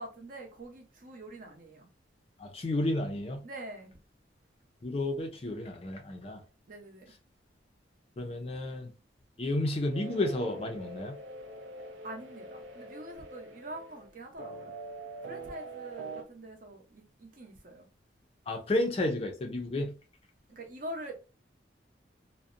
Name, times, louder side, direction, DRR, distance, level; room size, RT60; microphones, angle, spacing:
voice 1, 0.0-1.9 3.4-3.9 6.7-7.1 12.0-14.7 15.3-17.9 20.5-21.1, right 1 dB, 45° right, 0.6 m, -44 dB
voice 2, 2.4-3.4 4.8-6.4 8.2-8.9 9.4-11.2 18.5-19.9, left 1 dB, 30° left, 0.4 m, -31 dB
sound 1, 9.9-16.2, right 2 dB, 85° right, 0.5 m, -44 dB
2.6 x 2.0 x 2.4 m
head